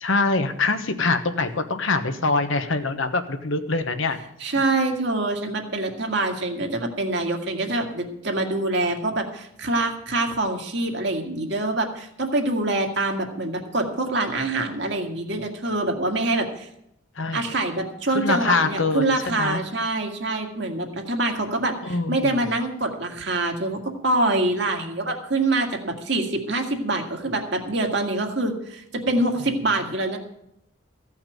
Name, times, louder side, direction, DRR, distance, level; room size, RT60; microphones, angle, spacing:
voice 1, 0.0-4.2 17.2-17.4 18.1-19.6 21.8-22.3, left 3 dB, 70° left, 8 dB, 1.2 m, -24 dB
voice 2, 4.4-16.7 17.3-30.2, right 2 dB, 55° right, 3 dB, 1.9 m, -25 dB
15.5 x 5.8 x 9.1 m, 0.79 s
head